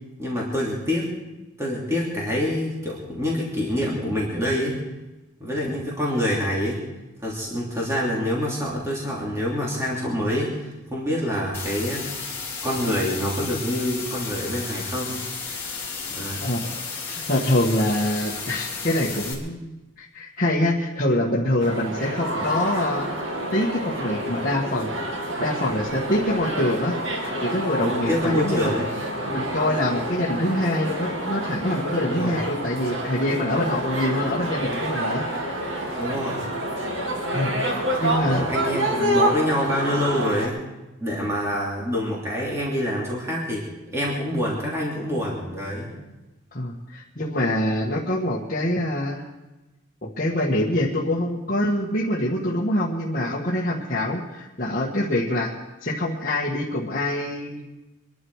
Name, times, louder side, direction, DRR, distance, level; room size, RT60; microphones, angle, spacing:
voice 1, 0.2-1.1 1.6-4.7 5.4-6.8 7.2-12.0 12.6-15.2 16.1-16.5 27.8-28.9 32.1-32.4 36.0-36.4 38.3-40.6 41.0-43.7 43.9-45.9, equal, 15° right, -5 dB, 3.0 m, -26 dB
sound 1, 11.5-19.3, left 5 dB, 10° left, 3.1 m, -33 dB
voice 2, 16.4-23.1 23.5-27.0 27.4-28.7 29.2-35.2 37.3-37.6 38.0-38.5 46.5-49.2 50.0-55.5 55.8-57.7, left 1 dB, 40° left, -5 dB, 1.6 m, -25 dB
sound 2, 21.6-40.5, right 1 dB, 70° right, 2.6 m, -28 dB
25.0 x 11.5 x 4.8 m, 1.1 s
head